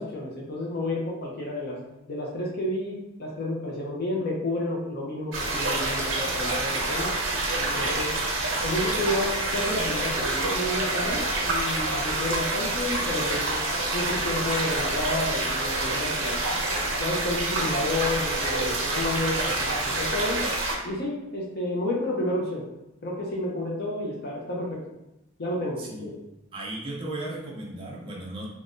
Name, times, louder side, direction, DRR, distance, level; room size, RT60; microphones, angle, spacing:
voice 1, 0.0-1.8 2.1-7.1 7.5-8.2 8.6-13.6 13.9-16.4 16.9-20.4 20.8-22.6 23.0-24.8 25.4-26.1, left 1 dB, 50° left, -2 dB, 0.5 m, -30 dB
sound 1, 5.3-20.7, right 2 dB, 65° right, 0.7 m, -27 dB
voice 2, 26.5-28.5, right 1 dB, 25° right, -4 dB, 0.6 m, -35 dB
3.4 x 2.2 x 2.5 m, 0.94 s
head